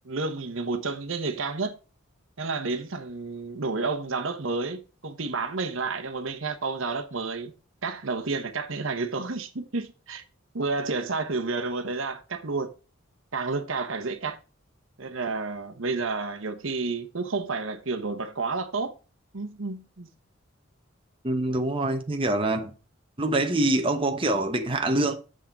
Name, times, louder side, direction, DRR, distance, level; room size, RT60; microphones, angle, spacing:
voice 1, 0.0-1.8 2.4-7.5 7.8-10.2 10.5-12.7 13.3-14.4 15.0-18.9 19.3-20.1, right 3 dB, 70° right, 1.0 m, -30 dB
voice 2, 21.2-22.7 23.2-25.1, right 2 dB, 25° right, 0.9 m, -25 dB
7.4 x 6.4 x 4.7 m
head